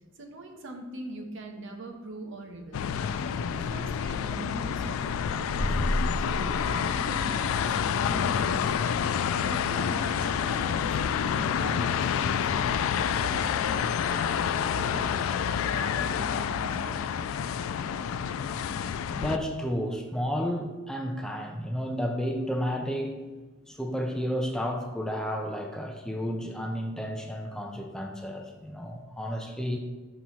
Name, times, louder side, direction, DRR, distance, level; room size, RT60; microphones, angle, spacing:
voice 1, 0.2-2.8 3.2-5.7 6.2-8.9 9.3-12.7 13.2-17.0, right 2 dB, 70° right, 3 dB, 0.9 m, -42 dB
sound 1, 2.7-19.4, left 7 dB, 90° left, 0.3 m, -28 dB
sound 2, 5.6-8.0, equal, 35° right, 1.5 m, -32 dB
voice 2, 19.1-23.3 23.7-29.8, equal, 5° left, 2 dB, 0.4 m, -32 dB
5.9 x 3.0 x 5.5 m, 1.3 s
head